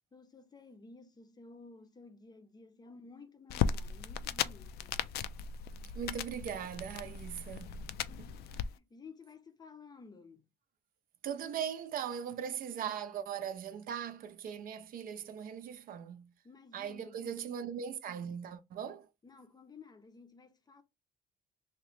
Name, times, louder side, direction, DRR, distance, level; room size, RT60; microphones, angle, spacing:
voice 1, 0.1-5.1 8.0-10.5 16.4-17.6 19.2-20.8, left 4 dB, 25° left, 0.6 m, -54 dB
sound 1, 3.5-8.7, left 8 dB, 70° left, 0.4 m, -37 dB
voice 2, 5.9-7.8 8.2-8.3 11.2-16.3 16.7-19.1, right 8 dB, 60° right, 0.5 m, -39 dB
3.0 x 2.8 x 3.1 m
cardioid pair, 110°, 17 cm